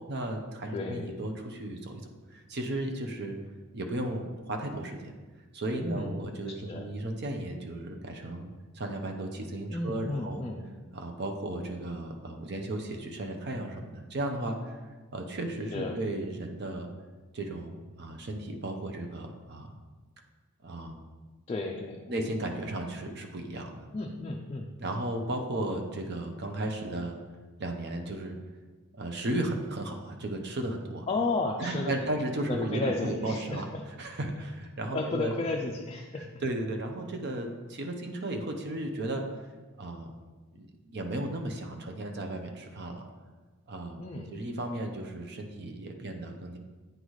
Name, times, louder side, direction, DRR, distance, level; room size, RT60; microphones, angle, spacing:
voice 1, 0.0-2.0 2.3-3.4 3.7-5.1 5.5-8.5 8.7-10.4 10.9-14.8 15.1-16.9 17.3-19.8 20.6-21.0 22.1-23.9 24.8-27.2 27.6-28.4 28.9-31.1 31.6-33.6 34.0-35.3 36.1-39.2 39.8-40.1 40.5-43.1 43.7-44.0 44.3-46.6, right 1 dB, 50° right, 3 dB, 0.6 m, -35 dB
voice 2, 0.7-1.1 5.8-6.1 6.7-6.9 9.7-10.6 15.7-15.9 21.5-22.1 23.9-24.7 31.1-31.9 32.5-33.6 34.9-36.2 44.0-44.3, left 2 dB, 25° left, 1 dB, 0.4 m, -32 dB
9.0 x 3.9 x 3.1 m, 1.3 s
head